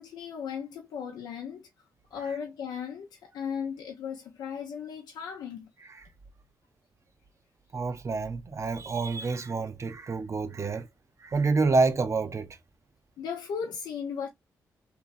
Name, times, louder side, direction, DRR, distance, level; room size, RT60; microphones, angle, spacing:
voice 1, 0.0-1.6 2.1-5.7 13.2-14.3, left 7 dB, 85° left, 0.6 m, -36 dB
voice 2, 7.7-10.9 11.2-12.6, right 3 dB, 45° right, 0.6 m, -28 dB
2.8 x 2.7 x 2.3 m
supercardioid pair, 50°, 7 cm